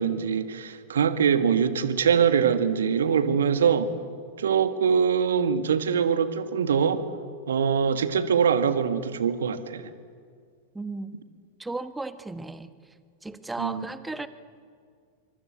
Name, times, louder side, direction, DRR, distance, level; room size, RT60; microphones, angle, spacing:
voice 1, 0.0-3.9 4.4-7.0 7.5-9.9 13.6-13.8, right 7 dB, 65° right, 10 dB, 1.7 m, -23 dB
voice 2, 10.7-11.1 11.6-12.7 13.2-14.3, right 2 dB, 5° right, 12 dB, 1.3 m, -34 dB
27.5 x 24.0 x 8.5 m, 2.1 s
figure-of-eight pair, 90°, 0 cm